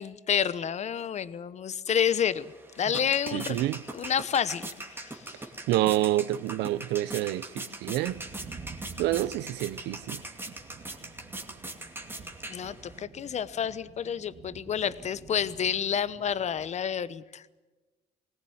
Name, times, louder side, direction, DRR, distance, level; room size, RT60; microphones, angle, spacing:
voice 1, 0.0-3.6 3.9-5.3 12.5-17.6, left 8 dB, 40° left, 1.0 m, -29 dB
sound 1, 2.3-13.0, right 2 dB, 15° right, 2.6 m, -41 dB
voice 2, 3.3-3.8 5.7-8.2 9.0-10.2, right 15 dB, 85° right, 0.7 m, -28 dB
sound 2, 8.1-16.7, right 4 dB, 40° right, 2.4 m, -49 dB
21.0 x 18.5 x 9.5 m
cardioid pair, 110°, 17 cm